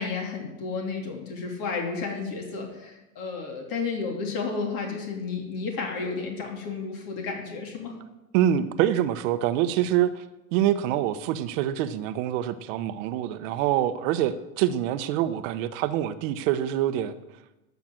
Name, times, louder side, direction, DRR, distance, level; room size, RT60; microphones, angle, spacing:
voice 1, 0.0-8.0, left 4 dB, 55° left, 1 dB, 2.8 m, -32 dB
voice 2, 8.3-10.2 10.5-17.1, right 11 dB, 65° right, 12 dB, 1.1 m, -25 dB
12.0 x 5.9 x 7.5 m, 0.99 s
hypercardioid pair, 105°, 41 cm